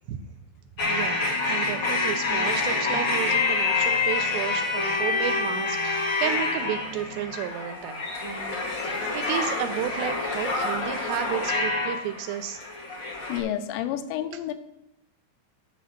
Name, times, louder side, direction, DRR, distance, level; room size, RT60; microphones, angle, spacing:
sound 1, 0.8-13.4, left 3 dB, 65° left, 1.1 m, -27 dB
voice 1, 0.8-12.6, right 11 dB, 85° right, 8 dB, 2.5 m, -32 dB
voice 2, 13.3-14.5, left 11 dB, 85° left, 10 dB, 2.9 m, -30 dB
8.2 x 7.4 x 5.8 m, 0.83 s
omnidirectional pair, 5.3 m